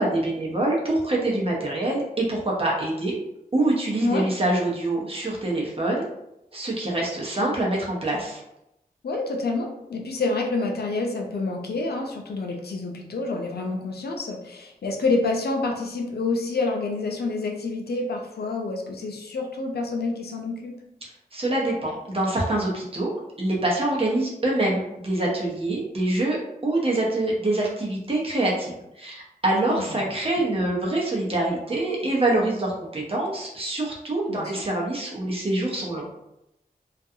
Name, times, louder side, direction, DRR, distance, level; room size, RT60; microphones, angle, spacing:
voice 1, 0.0-3.2 3.5-6.1 6.5-8.4 21.3-23.1 23.4-36.0, right 2 dB, 35° right, -3 dB, 0.8 m, -25 dB
voice 2, 9.0-20.7 29.7-30.0 34.3-34.6, left 3 dB, 90° left, 2 dB, 0.4 m, -28 dB
2.4 x 2.3 x 2.7 m, 0.86 s
wide cardioid pair, 70°, 16 cm